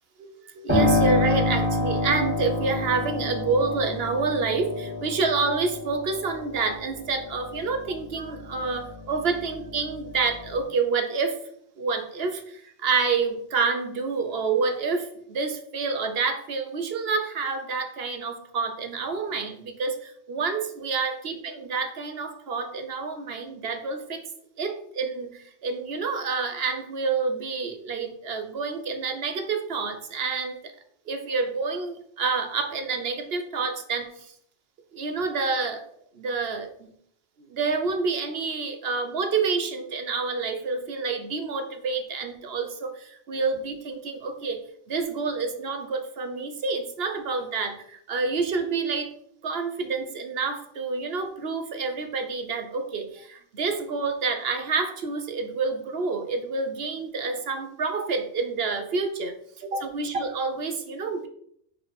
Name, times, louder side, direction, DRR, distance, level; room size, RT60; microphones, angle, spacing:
voice 1, 0.2-11.4 11.8-24.2 24.6-30.7 31.1-34.3 34.9-35.9 36.1-36.9 37.5-44.6 44.9-49.1 49.4-61.3, right 4 dB, 65° right, 7 dB, 1.1 m, -28 dB
Piano, 0.7-9.1 9.5-10.6, left 1 dB, 10° right, 2.1 m, -28 dB
5.0 x 4.6 x 5.8 m, 0.67 s
omnidirectional pair, 1.1 m